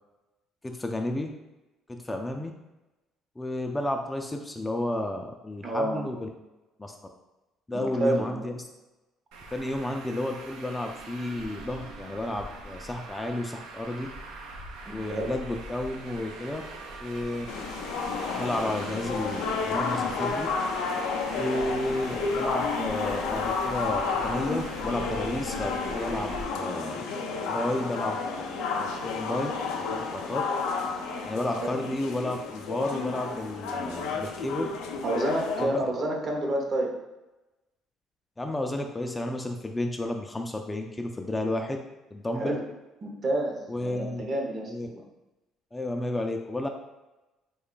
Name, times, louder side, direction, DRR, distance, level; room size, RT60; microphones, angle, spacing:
voice 1, 0.6-1.3 1.9-2.5 3.4-6.3 6.8-7.0 7.7-8.6 9.5-14.1 14.9-16.6 17.0-17.5 18.3-20.5 21.4-27.1 27.5-28.4 28.8-29.5 29.9-30.5 31.2-34.7 35.6-35.8 38.4-41.8 42.1-42.6 43.7-44.2 44.7-44.9 45.7-46.7, left 1 dB, 15° left, 3 dB, 0.3 m, -32 dB
voice 2, 5.6-6.0 7.7-8.5 14.9-15.3 35.0-36.9 42.3-42.6 43.0-45.0, right 1 dB, 45° right, 1 dB, 0.7 m, -29 dB
Traffic noise roadway noise, 9.3-26.4, right 2 dB, 85° right, 0.5 m, -42 dB
sound 1, 17.5-35.7, left 4 dB, 85° left, 0.4 m, -31 dB
3.1 x 2.3 x 3.7 m, 1.0 s
supercardioid pair, 85°, 0 cm